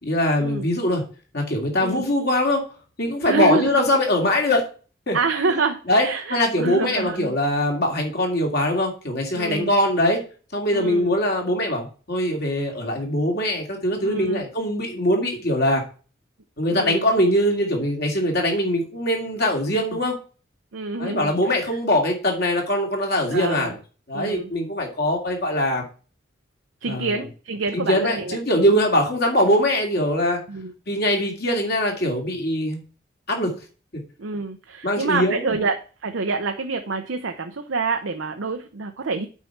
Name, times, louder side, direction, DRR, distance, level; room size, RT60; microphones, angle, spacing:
voice 1, 0.0-1.0 1.3-2.7 3.0-4.6 5.1-5.2 5.9-10.2 10.5-15.8 16.6-20.2 21.0-23.8 24.1-25.8 26.8-27.2 27.7-30.4 30.9-32.8 33.3-33.5 34.8-35.5, left 1 dB, 55° left, 1 dB, 2.5 m, -22 dB
voice 2, 3.3-3.8 5.1-7.3 9.3-9.8 10.7-11.1 14.0-14.5 16.7-17.1 20.7-21.6 23.3-23.7 24.1-24.5 26.8-28.7 30.5-30.7 34.2-39.3, right 4 dB, 85° right, 5 dB, 0.8 m, -27 dB
8.3 x 4.6 x 5.9 m, 0.37 s
head